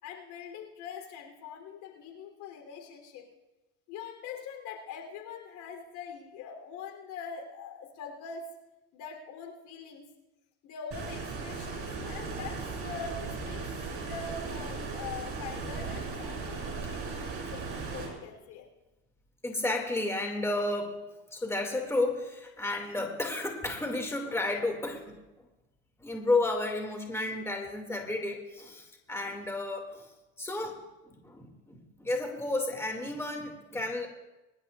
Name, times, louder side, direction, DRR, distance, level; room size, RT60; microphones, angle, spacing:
voice 1, 0.0-3.3 3.9-8.4 8.9-10.1 10.6-13.6 14.0-18.7, left 6 dB, 65° left, 3 dB, 3.4 m, -43 dB
Stream, 10.9-18.1, right 4 dB, 45° right, 5.6 m, -37 dB
voice 2, 19.4-21.0 21.3-25.5 26.0-30.1 30.4-30.8 31.1-34.1, left 2 dB, 10° left, 2 dB, 2.3 m, -32 dB
24.0 x 11.5 x 2.5 m, 1.0 s
supercardioid pair, 85°, 33 cm